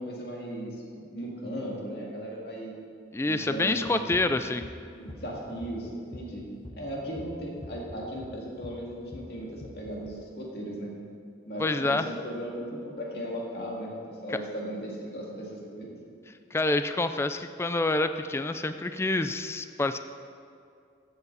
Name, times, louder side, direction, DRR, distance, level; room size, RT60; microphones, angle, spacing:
voice 1, 0.0-2.8 3.3-4.2 4.9-6.4 6.8-10.9 11.5-16.0, equal, 65° left, -3 dB, 2.3 m, -37 dB
voice 2, 3.1-4.6 11.6-12.1 16.5-20.0, left 2 dB, 15° left, 9 dB, 0.3 m, -27 dB
sound 1, 3.8-10.1, left 1 dB, 30° left, 0.7 m, -45 dB
14.0 x 8.1 x 4.0 m, 2.4 s
head